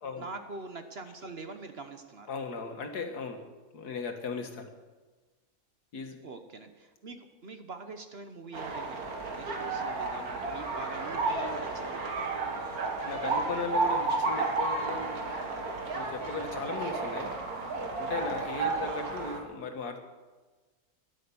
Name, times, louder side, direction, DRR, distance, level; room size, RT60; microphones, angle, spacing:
voice 1, 0.2-2.3 6.2-9.0 9.3-12.0 18.8-19.1, right 3 dB, 45° right, 7 dB, 1.0 m, -44 dB
voice 2, 2.3-3.4 3.7-4.7 5.9-6.2 13.0-17.3 18.0-20.0, left 4 dB, 80° left, 5 dB, 1.9 m, -37 dB
sound 1, 8.5-19.4, right 3 dB, 70° right, 2.1 m, -32 dB
13.0 x 11.0 x 6.9 m, 1.3 s
omnidirectional pair, 1.7 m